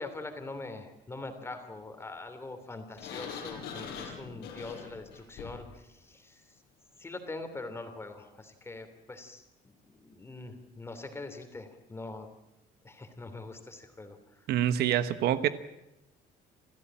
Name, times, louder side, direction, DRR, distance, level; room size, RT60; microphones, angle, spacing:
voice 1, 0.0-6.5 7.0-9.4 9.9-12.3 12.8-14.5, left 2 dB, 15° left, 7 dB, 2.9 m, -43 dB
Sliding door, 3.0-5.7, left 7 dB, 85° left, 5.6 m, -42 dB
voice 2, 14.5-15.5, right 11 dB, 70° right, 12 dB, 1.2 m, -26 dB
27.5 x 14.5 x 8.9 m, 0.94 s
cardioid pair, 155°, 17 cm